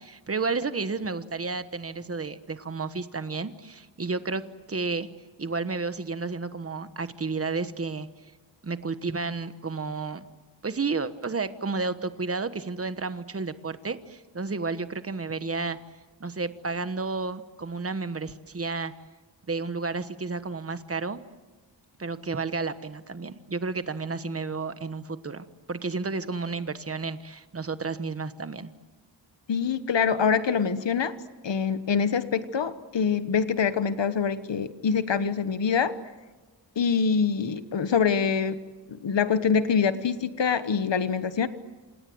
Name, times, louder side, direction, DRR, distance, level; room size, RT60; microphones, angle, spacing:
voice 1, 0.0-4.4 4.7-5.1 5.4-8.1 8.6-10.3 10.6-15.8 16.2-18.9 19.5-21.2 22.0-28.7, right 4 dB, 30° right, 11 dB, 1.2 m, -31 dB
voice 2, 29.5-31.1 31.4-35.9 36.8-38.6 39.0-41.5, left 6 dB, 70° left, 12 dB, 1.3 m, -25 dB
28.0 x 27.0 x 7.9 m, 1.2 s
wide cardioid pair, 145°, 44 cm